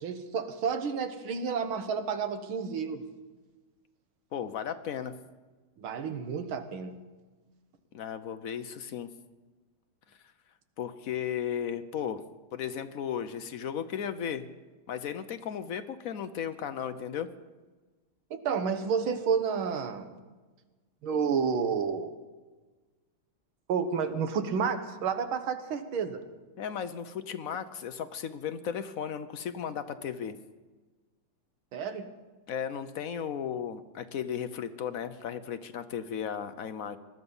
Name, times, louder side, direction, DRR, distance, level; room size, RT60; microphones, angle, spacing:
voice 1, 0.0-3.0 5.8-7.0 18.3-20.1 21.0-22.1 23.7-26.2 31.7-32.1, right 6 dB, 80° right, 8 dB, 2.0 m, -30 dB
voice 2, 4.3-5.1 7.9-9.1 10.8-12.2 12.5-14.5 14.9-17.3 26.6-30.4 32.5-37.0, left 8 dB, 65° left, 10 dB, 0.8 m, -35 dB
20.0 x 12.5 x 5.5 m, 1.3 s
omnidirectional pair, 2.3 m